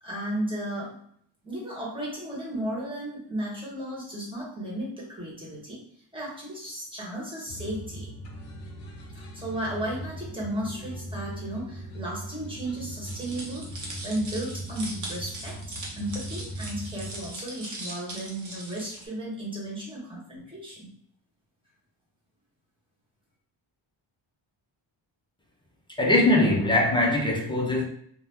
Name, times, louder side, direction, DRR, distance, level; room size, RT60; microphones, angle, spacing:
voice 1, 0.0-0.9 1.4-5.8 6.1-8.1 9.3-13.7 14.0-15.6 16.0-20.9, right 1 dB, 10° right, 1.2 m, -34 dB
sound 1, 7.5-17.3, right 1 dB, 55° left, 0.7 m, -40 dB
sound 2, 13.0-19.0, right 1 dB, 40° right, 0.8 m, -40 dB
voice 2, 26.0-27.8, left 2 dB, 10° left, 0.4 m, -21 dB
2.8 x 2.2 x 3.4 m
wide cardioid pair, 150°, 47 cm